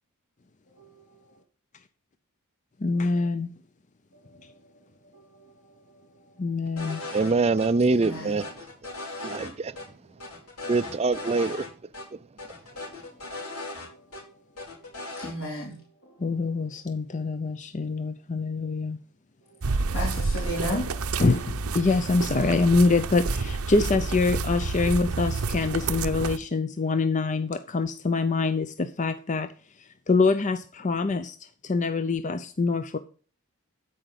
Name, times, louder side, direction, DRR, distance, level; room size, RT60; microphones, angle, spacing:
voice 1, 0.8-1.2 3.1-3.3 4.4-4.5 5.4-5.5 7.6-8.4 10.2-10.3 12.8-13.0 13.9-14.0 14.2-14.3 14.6-16.3 16.6-16.7 19.9-21.2, equal, 60° left, 4.1 m, -36 dB
voice 2, 2.8-3.5 6.4-7.0 16.2-19.0 21.2-29.5 29.8-33.0, left 3 dB, 35° left, 0.5 m, -25 dB
sound 1, 6.8-7.3 7.6-7.7 8.0-9.5 9.8-9.9 10.2-11.7 11.9-12.0 12.4-14.2 14.6-15.3, left 2 dB, 85° left, 4.6 m, -38 dB
voice 3, 7.1-8.4 9.2-9.7 10.7-11.6, right 3 dB, 30° right, 0.4 m, -24 dB
sound 2, 19.6-26.4, right 3 dB, 75° right, 0.7 m, -29 dB
13.5 x 5.0 x 5.8 m
head